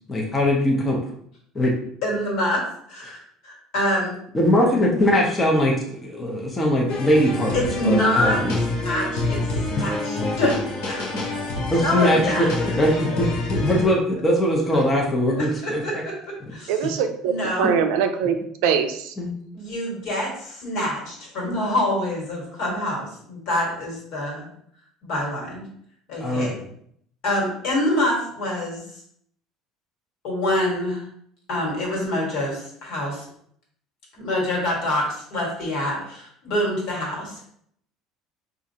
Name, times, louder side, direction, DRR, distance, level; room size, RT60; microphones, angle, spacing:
voice 1, 0.1-1.0 1.5-1.8 4.3-7.6 7.8-8.5 11.7-12.5 12.8-16.0 17.6-17.7 19.2-19.3 26.2-26.7, left 1 dB, 15° left, -1 dB, 0.6 m, -21 dB
voice 2, 2.0-2.6 2.9-4.1 7.5-10.5 10.9-11.3 11.8-12.5 15.4-16.1 16.5-16.7 17.2-17.8 19.5-24.5 25.0-25.6 26.1-26.5 27.2-28.8 30.2-31.0 31.5-33.3 34.1-37.5, left 1 dB, 60° left, -2 dB, 1.5 m, -26 dB
sound 1, 6.9-13.8, left 2 dB, 75° left, 0.8 m, -27 dB
voice 3, 16.7-17.3 17.6-19.1, right 7 dB, 80° right, 7 dB, 0.4 m, -22 dB
4.2 x 2.4 x 2.7 m, 0.66 s
cardioid pair, 155°, 0 cm